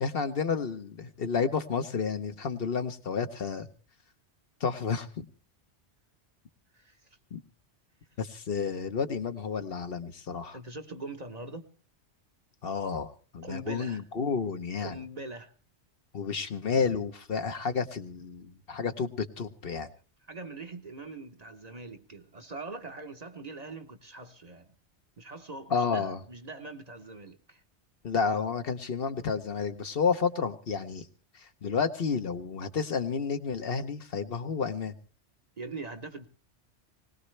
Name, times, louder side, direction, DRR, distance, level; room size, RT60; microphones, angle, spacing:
voice 1, 0.0-3.7 4.6-5.3 7.3-7.4 8.2-10.6 12.6-14.9 16.1-19.9 25.7-26.2 28.0-31.1 31.3-35.0, left 5 dB, 60° left, 1.1 m, -31 dB
voice 2, 6.7-7.1 10.5-11.7 13.4-14.0 14.8-15.5 20.3-24.7 25.2-27.6 35.6-36.3, right 2 dB, 40° right, 1.0 m, -42 dB
20.5 x 19.0 x 3.3 m
omnidirectional pair, 1.1 m